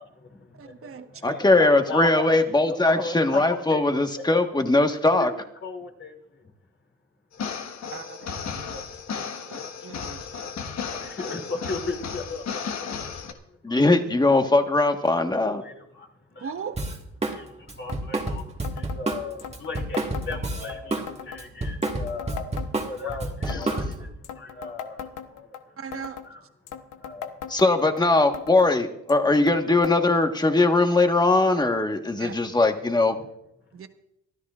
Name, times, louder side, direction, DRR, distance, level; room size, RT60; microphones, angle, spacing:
voice 1, 0.0-4.0 4.3-4.4 5.1-6.5 8.2-9.4 9.8-9.9 10.9-13.4 13.7-13.8 14.5-14.6 15.3-16.5 16.9-26.5 26.9-27.4, left 3 dB, 40° left, 1 dB, 2.9 m, -38 dB
voice 2, 0.6-1.1 7.9-8.2 8.5-10.5 16.4-16.8 25.8-26.2 32.2-32.3 33.7-33.9, right 6 dB, 45° right, 7 dB, 1.3 m, -39 dB
voice 3, 1.2-5.3 13.6-15.6 27.5-33.2, left 2 dB, 15° left, 5 dB, 1.4 m, -20 dB
sound 1, 7.3-13.3, left 6 dB, 65° left, 1.4 m, -34 dB
Drum kit, 16.8-17.4 17.7-21.1 21.4-24.1, right 2 dB, 20° right, 1.8 m, -29 dB
sound 2, 17.9-18.0 18.3-18.4 18.6-19.0 19.4-20.8 21.1-21.4 21.8-23.2 23.5-23.9 24.2-25.6 25.9-26.3 26.7-28.0 28.3-28.7 29.1-29.6 29.8-30.0 30.2-30.3 31.1-31.2 32.0-32.1, left 9 dB, 85° left, 1.0 m, -38 dB
24.5 x 13.0 x 2.5 m, 0.81 s
cardioid pair, 90°, 30 cm